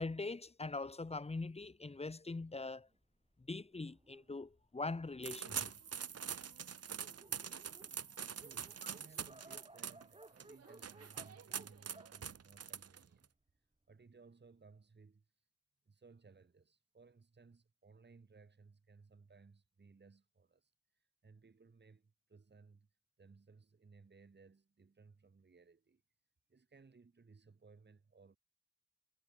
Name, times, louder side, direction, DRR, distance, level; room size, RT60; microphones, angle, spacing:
voice 1, 0.0-2.9 3.4-5.7, left 3 dB, 20° left, 1.0 m, -42 dB
Dog, 2.5-5.5 6.2-6.3 6.6-6.7 6.9-13.3, right 2 dB, 20° right, 7.3 m, -61 dB
sound 1, 5.2-13.2, right 7 dB, 55° right, 1.0 m, -44 dB
voice 2, 8.4-13.3 13.9-15.2 15.9-22.9 23.2-26.0 26.5-28.4, right 4 dB, 35° right, 2.0 m, -62 dB
wide cardioid pair, 100°, 30 cm